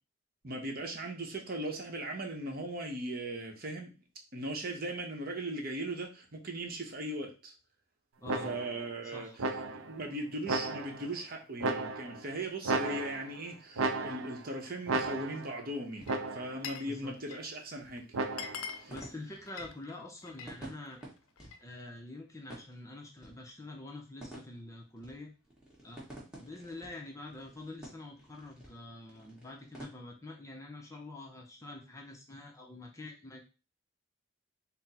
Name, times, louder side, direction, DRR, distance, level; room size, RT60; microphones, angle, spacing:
voice 1, 0.4-3.9 4.3-7.5 8.4-18.1 18.7-18.9, right 1 dB, 45° right, 2 dB, 0.8 m, -39 dB
voice 2, 8.2-8.5 9.1-9.4 16.9-17.4 18.9-21.0 21.6-25.3 25.8-26.0 26.4-33.4, left 2 dB, 15° left, 1 dB, 0.5 m, -46 dB
sound 1, 8.3-8.9 9.4-10.0 10.5-11.1 11.6-12.3 12.6-13.4 13.8-14.5 14.9-15.6 16.1-16.7 18.1-18.7, right 3 dB, 85° right, 0.5 m, -34 dB
sound 2, 13.6-29.9, right 1 dB, 5° right, 1.2 m, -53 dB
Glass, 15.9-16.9 17.2-17.6 18.0-18.1 18.3-20.6 20.9-21.7, left 6 dB, 85° left, 0.4 m, -44 dB
4.1 x 2.0 x 4.1 m, 0.31 s
head